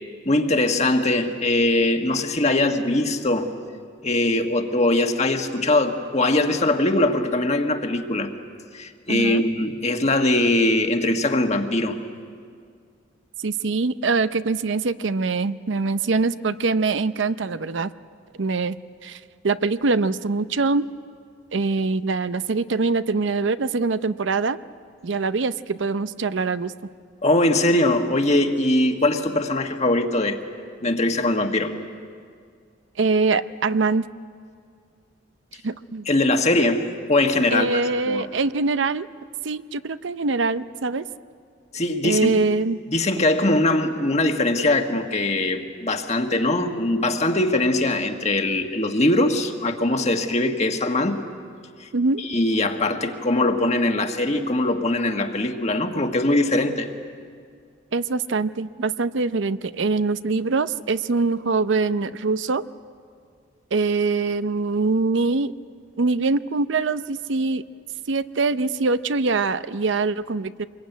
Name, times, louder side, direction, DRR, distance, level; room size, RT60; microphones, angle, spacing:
voice 1, 0.2-3.5 4.0-8.3 8.7-12.0 27.2-30.4 30.8-31.7 36.1-37.8 38.0-38.3 41.7-42.3 42.9-51.2 51.8-51.9 52.2-56.9, left 2 dB, 35° left, 5 dB, 1.6 m, -21 dB
voice 2, 9.1-9.5 13.4-17.9 18.4-18.8 19.0-20.9 21.5-24.6 25.0-26.7 33.0-34.1 35.6-36.1 37.5-39.1 39.4-41.0 42.0-42.8 51.9-52.2 57.9-62.6 63.7-65.5 66.0-67.6 68.1-70.7, right 3 dB, 75° right, 13 dB, 0.6 m, -23 dB
25.5 x 22.0 x 9.2 m, 2.2 s
head